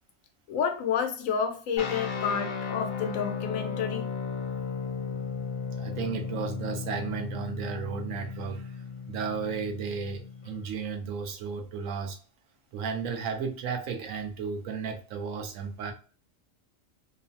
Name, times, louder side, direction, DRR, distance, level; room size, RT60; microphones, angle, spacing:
voice 1, 0.5-4.1, left 7 dB, 85° left, 1.0 m, -30 dB
sound 1, 1.8-10.7, left 5 dB, 55° left, 0.5 m, -35 dB
voice 2, 5.8-8.8 9.1-12.2 12.7-15.9, right 6 dB, 85° right, 1.1 m, -34 dB
3.1 x 2.0 x 2.5 m
omnidirectional pair, 1.4 m